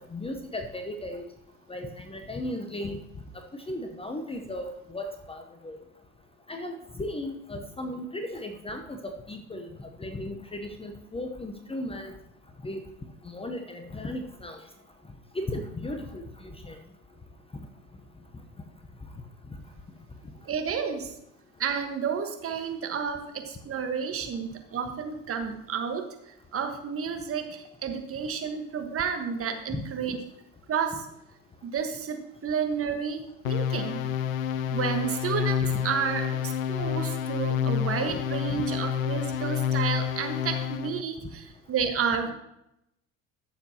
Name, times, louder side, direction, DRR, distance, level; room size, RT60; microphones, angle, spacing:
voice 1, 0.1-1.2 1.7-3.0 3.5-5.8 6.5-12.1 12.6-12.8 13.2-14.6 15.3-16.8 29.7-29.8 38.5-38.6, left 1 dB, 15° left, 5 dB, 0.9 m, -36 dB
voice 2, 20.4-21.1 21.6-26.0 26.5-30.2 30.7-30.9 31.6-34.0 34.7-42.3, right 7 dB, 35° right, 5 dB, 1.4 m, -31 dB
sound 1, 33.4-41.0, left 9 dB, 75° left, 0.5 m, -29 dB
14.0 x 6.7 x 2.9 m, 0.83 s
figure-of-eight pair, 70°, 41 cm